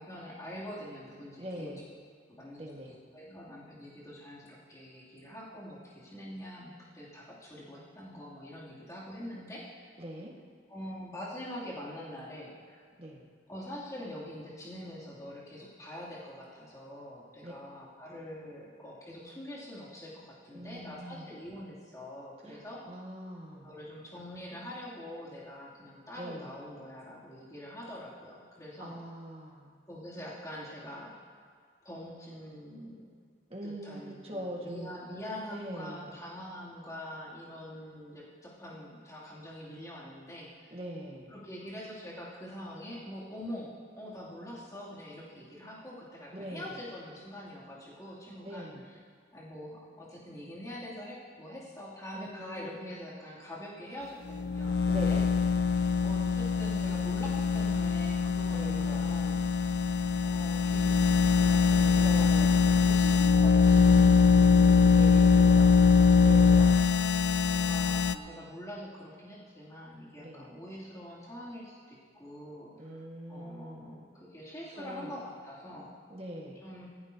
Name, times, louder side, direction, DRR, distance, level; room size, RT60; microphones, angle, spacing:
voice 1, 0.0-1.7 2.3-2.7 3.1-9.9 10.7-12.8 13.5-22.9 23.6-29.0 29.9-31.1 31.8-33.1 33.6-40.8 41.3-48.7 49.3-55.2 56.0-59.5 60.2-61.0 61.3-66.7 67.4-73.0 73.3-75.9 76.6-76.9, equal, 20° left, -7 dB, 2.8 m, -44 dB
voice 2, 1.4-1.8 2.6-2.9 10.0-10.3 13.0-13.3 17.4-17.5 20.5-21.3 22.4-23.7 26.1-26.6 28.8-29.7 33.5-34.9 35.5-36.1 40.7-41.4 46.3-46.8 48.4-48.9 52.1-53.0 54.8-55.4 58.5-59.1 62.0-62.5 64.3-65.5 66.2-66.9 70.2-70.6 72.7-74.0 74.7-75.1 76.1-76.6, equal, 35° right, -2 dB, 1.7 m, -42 dB
sound 1, 54.3-68.1, left 5 dB, 70° left, 0.4 m, -23 dB
17.5 x 14.5 x 2.8 m, 2.1 s
head